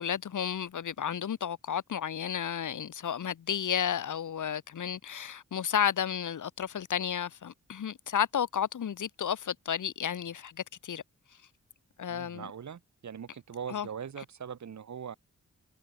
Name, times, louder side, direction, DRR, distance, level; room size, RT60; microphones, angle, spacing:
voice 1, 0.0-11.0 12.0-12.5 13.7-13.9, left 8 dB, 90° left, 2.2 m, -32 dB
voice 2, 12.1-15.2, right 7 dB, 70° right, 2.6 m, -41 dB
wide cardioid pair, 140°, 30 cm